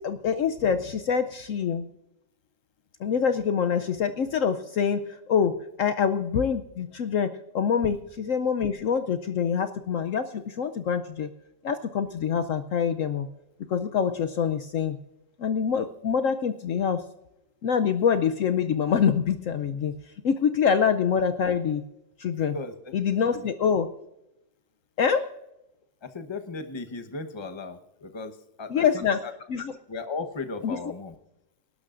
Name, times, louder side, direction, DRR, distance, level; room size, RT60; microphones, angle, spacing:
voice 1, 0.0-1.9 3.0-11.3 11.6-13.3 13.7-15.0 15.4-17.0 17.6-19.9 20.2-21.8 22.2-22.5 22.9-23.9 25.0-25.3 28.7-29.2 29.5-29.6 30.6-30.8, left 7 dB, 90° left, 9 dB, 0.7 m, -25 dB
voice 2, 22.5-23.5 26.0-29.3 29.9-31.2, left 3 dB, 25° left, 6 dB, 0.6 m, -37 dB
26.0 x 12.0 x 2.5 m, 0.90 s
omnidirectional pair, 2.1 m